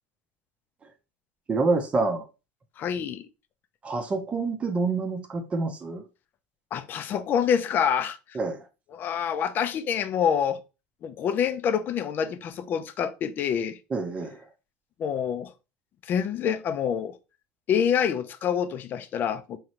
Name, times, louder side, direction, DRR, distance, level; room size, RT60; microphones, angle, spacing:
voice 1, 1.5-2.3 3.8-6.1 8.3-8.7 13.9-14.4, right 3 dB, 25° right, 0.7 m, -27 dB
voice 2, 2.8-3.3 6.7-8.2 8.9-10.6 11.0-13.8 15.0-15.5 16.1-17.2 17.7-19.6, left 8 dB, 40° left, 0.5 m, -26 dB
3.6 x 3.1 x 2.9 m
supercardioid pair, 110°, 5 cm